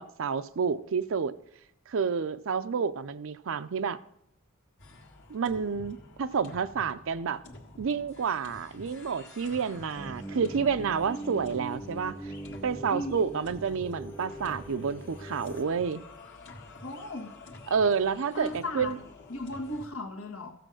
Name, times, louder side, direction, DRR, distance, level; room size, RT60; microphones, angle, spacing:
voice 1, 0.0-1.3 1.9-4.0 5.3-7.4 7.8-12.2 12.6-16.0 17.7-19.0, right 6 dB, 65° right, 0.5 m, -29 dB
sound 1, 4.8-19.9, left 2 dB, 60° left, 1.8 m, -49 dB
sound 2, 9.9-15.6, right 1 dB, 10° left, 0.9 m, -41 dB
voice 2, 12.9-13.2 16.8-17.3 18.3-18.9 19.3-20.5, left 1 dB, 85° left, 1.7 m, -36 dB
14.5 x 7.6 x 6.3 m
head